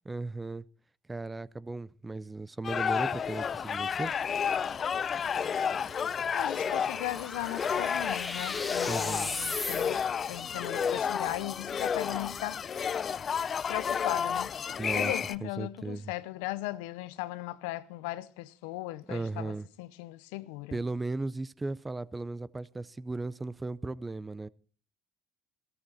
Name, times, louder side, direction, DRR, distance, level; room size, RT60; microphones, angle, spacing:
voice 1, 0.1-0.7 1.1-4.1 8.9-9.3 14.8-15.1 15.4-16.1 19.1-19.7 20.7-24.5, right 3 dB, 15° right, 0.5 m, -36 dB
sound 1, 2.6-15.4, left 7 dB, 40° left, 0.5 m, -31 dB
sound 2, 2.9-10.3, left 2 dB, 15° left, 2.1 m, -41 dB
voice 2, 6.3-10.0 10.3-12.6 13.7-14.5 14.9-20.8, left 17 dB, 85° left, 0.7 m, -37 dB
14.5 x 14.0 x 4.1 m
supercardioid pair, 85°, 0 cm